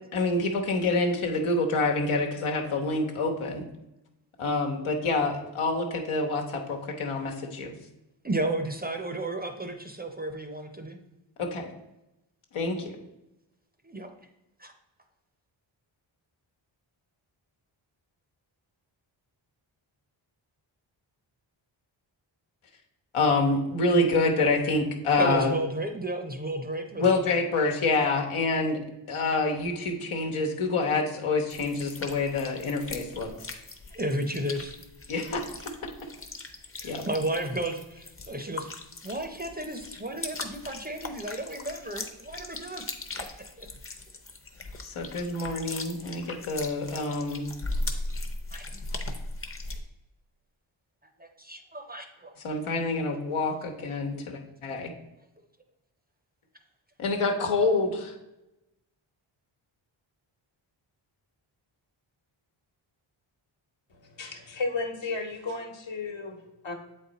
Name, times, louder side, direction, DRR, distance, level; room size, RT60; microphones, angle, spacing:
voice 1, 0.1-3.7 4.4-7.7 11.4-11.7 12.5-13.0 23.1-25.5 27.0-28.8 29.1-33.3 35.1-35.4 36.8-37.0 44.8-47.5 52.4-54.9 57.0-58.1, left 3 dB, 85° left, 1 dB, 1.2 m, -27 dB
voice 2, 8.2-11.0 13.8-14.1 14.6-14.7 25.2-27.3 33.9-34.8 36.8-38.7 39.0-42.9 43.2-43.7 48.5-48.7 51.2-52.3 54.0-54.1, right 1 dB, 20° right, 6 dB, 0.6 m, -33 dB
sound 1, 31.5-49.8, left 2 dB, 25° left, 0.8 m, -39 dB
voice 3, 63.9-66.7, left 3 dB, 65° left, 3 dB, 1.2 m, -34 dB
7.7 x 4.1 x 4.0 m, 0.94 s
wide cardioid pair, 90°, 49 cm